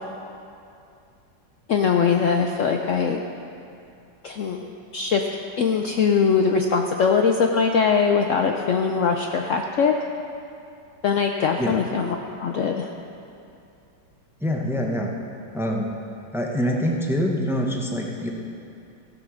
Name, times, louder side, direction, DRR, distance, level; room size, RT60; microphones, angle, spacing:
voice 1, 1.7-3.2 4.2-5.2 5.6-9.9 11.0-12.9, left 6 dB, 70° left, 3 dB, 0.7 m, -21 dB
voice 2, 14.4-15.1 15.5-16.0 16.3-18.3, equal, 5° right, 0 dB, 0.3 m, -25 dB
15.0 x 7.8 x 6.2 m, 2.6 s
omnidirectional pair, 1.9 m